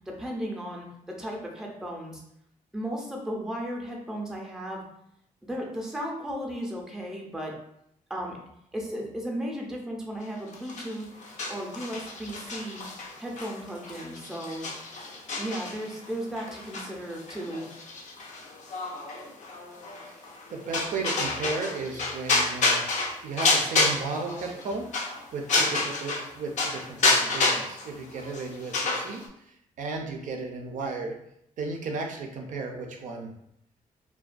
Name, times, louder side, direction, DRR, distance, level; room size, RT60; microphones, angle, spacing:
voice 1, 0.1-2.2 2.7-4.9 5.4-7.5 8.1-8.4 8.7-11.1 11.5-12.8 13.2-14.7 15.4-17.7, equal, 5° right, -1 dB, 0.5 m, -35 dB
sound 1, 10.5-26.3 26.6-29.3, left 3 dB, 60° left, 0.5 m, -29 dB
voice 2, 20.5-22.9 23.2-24.9 25.3-31.1 31.6-33.3, right 3 dB, 65° right, 1 dB, 0.4 m, -34 dB
2.3 x 2.2 x 2.4 m, 0.76 s
cardioid pair, 95°, 14 cm